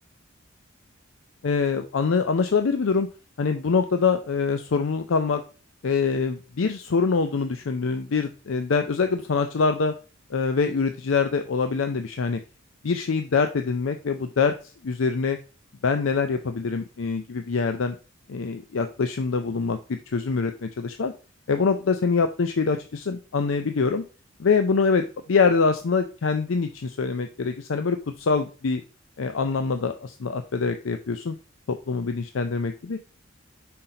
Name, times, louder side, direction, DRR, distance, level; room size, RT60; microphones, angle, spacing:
voice 1, 1.4-3.1 3.4-5.4 5.8-9.9 10.3-12.4 12.8-14.5 14.8-15.4 15.8-18.0 18.3-21.1 21.5-24.0 24.4-28.8 29.2-31.4 31.7-33.0, left 5 dB, 70° left, 7 dB, 0.5 m, -24 dB
5.7 x 4.2 x 5.0 m, 0.35 s
head